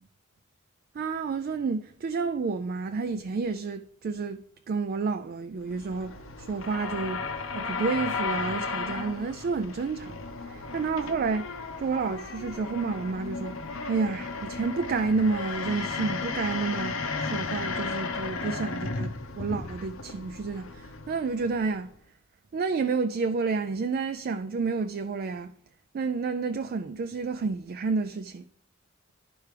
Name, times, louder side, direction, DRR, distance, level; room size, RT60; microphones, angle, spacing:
voice 1, 0.9-7.3 7.5-11.5 11.8-19.1 19.4-21.9 22.5-25.5 25.9-28.5, right 4 dB, 45° right, 0.3 m, -30 dB
sound 1, 5.6-22.0, left 4 dB, 85° left, 0.7 m, -35 dB
11.5 x 4.7 x 3.3 m
head